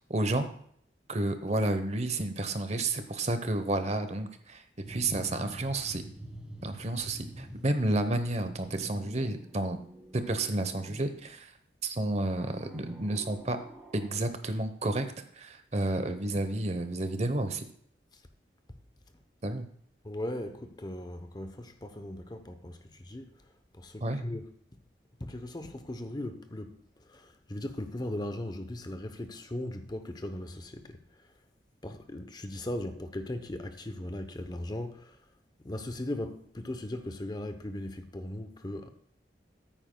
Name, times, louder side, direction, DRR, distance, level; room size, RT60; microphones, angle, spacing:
voice 1, 0.1-0.5 1.1-4.6 4.9-6.0 6.6-9.8 10.1-11.5 11.8-13.6 13.9-15.1 15.3-17.6 19.4-19.7 24.0-24.2, right 2 dB, 35° right, 0.8 m, -31 dB
sound 1, 4.8-8.0 8.3-11.4 12.2-14.2, equal, 5° right, 1.4 m, -47 dB
voice 2, 20.0-23.4 23.7-24.5 25.2-31.3 31.8-35.2 35.6-38.9, left 1 dB, 25° left, 0.7 m, -38 dB
14.0 x 9.0 x 2.2 m
head